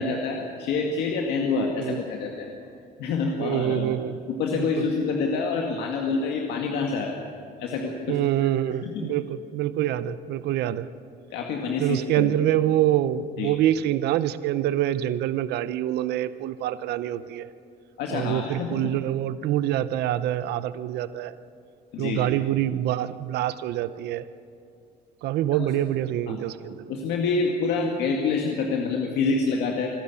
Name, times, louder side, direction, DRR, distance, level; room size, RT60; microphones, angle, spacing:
voice 1, 0.0-2.5 3.0-4.0 4.3-7.2 7.6-8.5 8.8-9.0 11.3-12.3 13.4-13.5 18.0-18.9 21.9-22.3 25.5-25.7 26.3-26.4 26.9-29.9, left 4 dB, 80° left, 1 dB, 2.0 m, -27 dB
voice 2, 3.4-4.2 4.5-4.8 8.1-10.9 11.8-17.5 18.1-21.4 22.0-24.3 25.2-27.0, right 12 dB, 80° right, 14 dB, 0.8 m, -26 dB
26.0 x 13.0 x 8.4 m, 2.4 s
cardioid pair, 110°, 17 cm